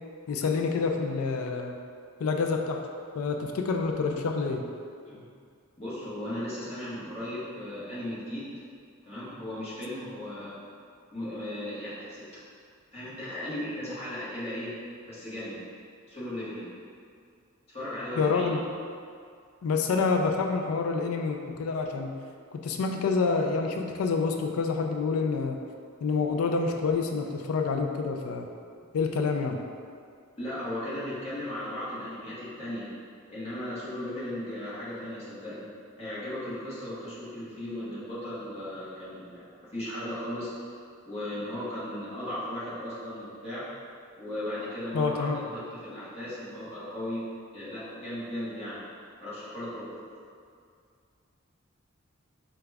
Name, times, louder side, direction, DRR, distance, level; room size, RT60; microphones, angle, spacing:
voice 1, 0.3-1.8 2.2-2.8 3.2-4.6 18.1-18.6 19.6-22.1 22.5-25.6 26.0-28.5 28.9-29.6 44.9-45.4, left 4 dB, 85° left, 3 dB, 0.3 m, -27 dB
voice 2, 5.8-8.5 9.0-10.5 11.1-12.4 12.9-14.7 15.0-15.6 16.1-16.7 17.7-18.5 30.4-32.9 33.3-35.7 36.0-39.5 39.7-40.5 41.0-43.7 44.2-47.3 47.5-48.8 49.2-49.9, left 1 dB, 30° left, -10 dB, 1.2 m, -36 dB
4.8 x 2.3 x 3.3 m, 2.3 s
head